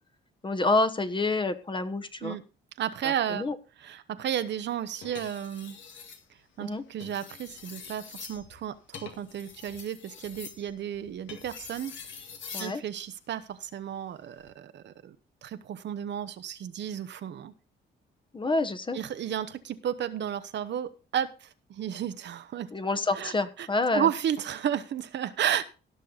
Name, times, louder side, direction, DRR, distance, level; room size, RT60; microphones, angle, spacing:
voice 1, 0.4-2.4 3.0-3.5 6.6-6.8 12.5-12.8 18.3-19.0 22.7-24.1, left 3 dB, 25° left, 11 dB, 1.2 m, -28 dB
voice 2, 2.8-3.4 3.8-5.8 6.6-11.9 12.6-15.2 15.4-17.5 18.9-22.7 23.1-23.7 23.9-25.6, right 9 dB, 65° right, 12 dB, 0.9 m, -33 dB
sound 1, 5.0-6.2 6.9-12.8 14.2-14.5, left 6 dB, 70° left, 2.1 m, -45 dB
17.0 x 6.5 x 4.0 m, 0.33 s
cardioid pair, 90°, 20 cm